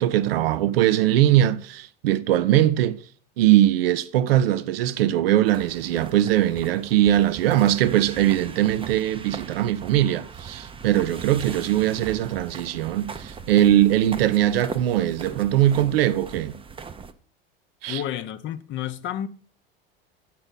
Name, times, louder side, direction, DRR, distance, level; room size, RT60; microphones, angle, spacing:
voice 1, 0.0-3.0 3.4-16.6 17.8-18.0, right 12 dB, 75° right, 0.6 m, -21 dB
sound 1, 5.4-17.1, right 5 dB, 20° right, 0.6 m, -39 dB
voice 2, 17.9-19.3, left 10 dB, 40° left, 0.6 m, -30 dB
8.8 x 5.7 x 4.0 m
hypercardioid pair, 85°, 29 cm